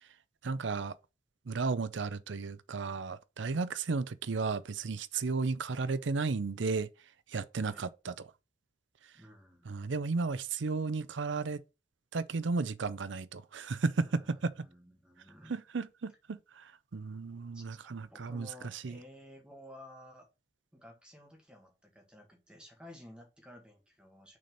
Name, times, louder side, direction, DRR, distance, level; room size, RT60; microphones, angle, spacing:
voice 1, 0.4-0.9 1.5-6.9 7.3-8.3 9.7-11.6 12.1-14.0 14.4-14.5 15.5-18.5 18.8-19.0, right 4 dB, 75° right, 0.5 m, -34 dB
voice 2, 9.1-9.7 14.0-15.6 17.5-20.3 20.7-24.4, left 1 dB, 5° right, 1.8 m, -54 dB
6.2 x 4.3 x 5.3 m
head